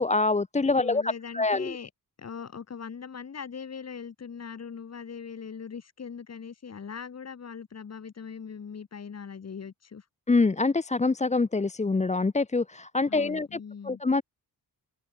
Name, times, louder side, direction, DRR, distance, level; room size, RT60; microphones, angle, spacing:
voice 1, 0.0-1.8 10.3-13.6 13.8-14.2, left 3 dB, 20° left, 1.1 m, -25 dB
voice 2, 0.8-1.9 2.2-10.0 13.1-14.0, left 6 dB, 45° left, 6.6 m, -40 dB
wide cardioid pair, 170°, 36 cm